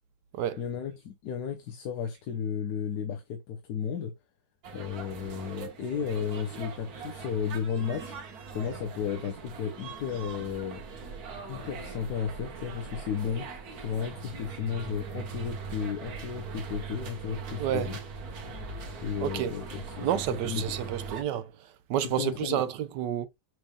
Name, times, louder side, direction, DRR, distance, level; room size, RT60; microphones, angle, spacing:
voice 1, 0.6-4.1 4.7-8.2 8.5-10.8 11.5-13.5 13.8-18.0 19.0-20.1 20.4-20.8 22.2-22.6, left 7 dB, 75° left, 1.3 m, -33 dB
sound 1, 4.6-21.2, right 5 dB, 65° right, 1.6 m, -41 dB
voice 2, 17.6-17.9 19.2-19.5 20.0-23.3, right 10 dB, 90° right, 1.3 m, -30 dB
6.2 x 3.4 x 2.3 m
omnidirectional pair, 1.8 m